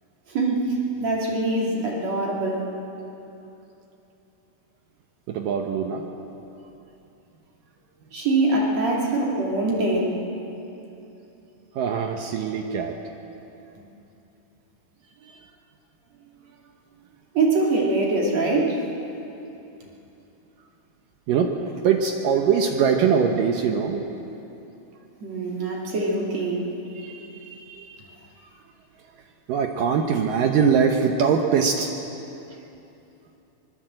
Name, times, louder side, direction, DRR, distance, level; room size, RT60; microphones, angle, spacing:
voice 1, 0.3-2.8 8.1-10.2 17.3-18.8 25.2-26.7, right 2 dB, 45° right, -2 dB, 3.6 m, -23 dB
voice 2, 5.3-6.1 11.7-13.0 15.2-15.5 16.3-16.4 21.3-24.1 26.9-28.1 28.4-28.6 29.1-29.2 29.5-31.9 32.5-32.6, right 6 dB, 70° right, 3 dB, 2.4 m, -23 dB
25.0 x 21.0 x 7.7 m, 2.9 s
omnidirectional pair, 4.5 m